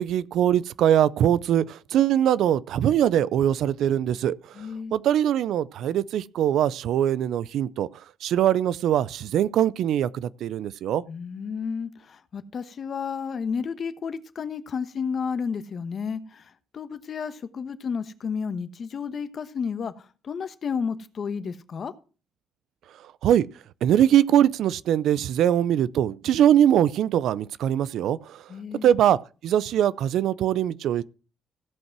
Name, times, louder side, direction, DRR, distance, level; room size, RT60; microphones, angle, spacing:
voice 1, 0.0-4.4 4.9-7.9 8.2-11.0 23.2-23.5 23.8-28.4 28.8-29.2 29.4-31.0, right 10 dB, 75° right, 0.5 m, -22 dB
voice 2, 4.5-5.0 11.1-21.9 28.5-28.9, left 6 dB, 50° left, 1.1 m, -32 dB
16.0 x 5.4 x 6.0 m
cardioid pair, 90°, 0 cm